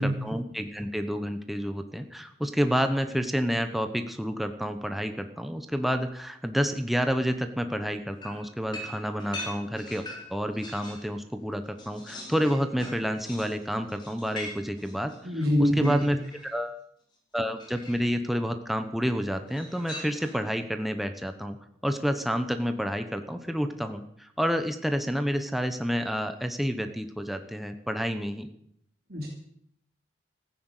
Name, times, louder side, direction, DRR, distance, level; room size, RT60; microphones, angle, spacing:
voice 1, 0.0-10.0 10.3-16.2 16.4-16.8 17.3-21.6 21.8-28.5, equal, ahead, 7 dB, 1.0 m, -29 dB
sound 1, 8.2-11.1 11.5-16.5 17.6-18.2 19.5-20.5, left 1 dB, 25° left, 4.2 m, -42 dB
voice 2, 15.2-16.0 29.1-29.3, equal, 55° right, -2 dB, 2.9 m, -24 dB
14.5 x 10.0 x 8.2 m, 0.69 s
head